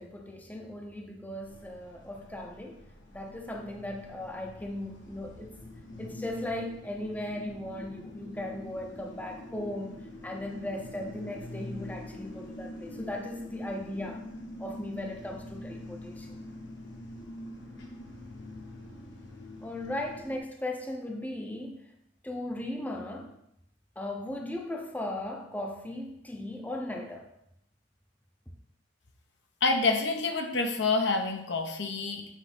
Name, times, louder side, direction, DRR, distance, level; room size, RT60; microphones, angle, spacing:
voice 1, 0.0-2.8 3.1-5.6 6.0-14.2 14.6-16.4 19.6-21.9 22.2-23.4 24.0-27.3, left 1 dB, 10° left, 1 dB, 0.7 m, -37 dB
sound 1, 1.4-20.4, left 1 dB, 90° left, 1.5 m, -45 dB
voice 2, 29.6-32.3, left 3 dB, 70° left, 4 dB, 1.0 m, -27 dB
8.1 x 3.3 x 5.9 m, 0.77 s
head